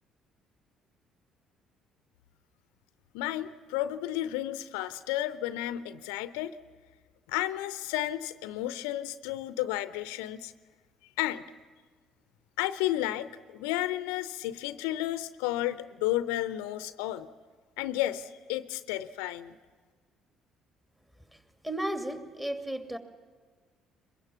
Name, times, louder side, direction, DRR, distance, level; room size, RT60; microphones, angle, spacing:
voice 1, 3.1-6.6 7.3-10.5 11.2-11.4 12.6-17.3 17.8-19.6, left 14 dB, 75° left, 14 dB, 0.6 m, -32 dB
voice 2, 21.6-23.0, right 1 dB, 10° right, 7 dB, 2.6 m, -33 dB
22.5 x 22.0 x 7.1 m, 1.5 s
hypercardioid pair, 50°, 0 cm